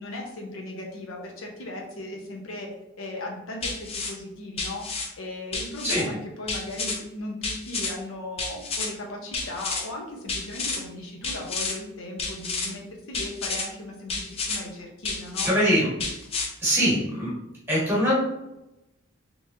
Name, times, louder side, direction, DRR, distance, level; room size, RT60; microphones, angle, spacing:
voice 1, 0.0-2.7 3.0-15.5, left 1 dB, 80° left, 0 dB, 0.8 m, -37 dB
sound 1, 3.6-4.1 4.6-5.1 5.5-6.0 6.5-7.0 7.4-7.9 8.4-8.9 9.3-9.8 10.3-10.8 11.2-11.7 12.2-12.7 13.1-13.6 14.1-14.6 15.0-15.5 16.0-16.5, left 4 dB, 30° left, 0.5 m, -30 dB
voice 2, 15.4-15.9 16.6-17.3 17.7-18.2, equal, 10° right, -6 dB, 1.3 m, -22 dB
3.6 x 3.0 x 2.7 m, 0.89 s
head